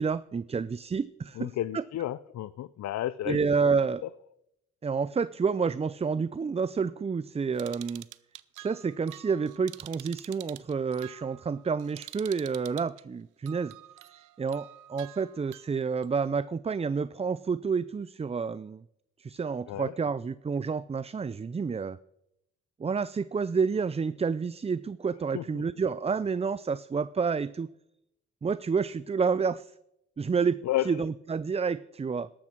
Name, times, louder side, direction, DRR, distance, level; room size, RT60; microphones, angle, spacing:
voice 1, 0.0-1.8 3.2-4.0 4.8-8.1 8.6-13.7 14.0-18.8 19.2-22.0 22.8-27.7 28.4-29.7 30.2-32.3, right 5 dB, 20° right, 17 dB, 0.4 m, -29 dB
voice 2, 1.4-3.5 19.7-19.9 25.3-25.4 30.7-30.9, left 13 dB, 65° left, 17 dB, 0.5 m, -31 dB
sound 1, 7.6-13.0 13.5-16.1, right 15 dB, 85° right, 0.6 m, -47 dB
13.5 x 12.0 x 4.5 m, 0.82 s
supercardioid pair, 60°, 30 cm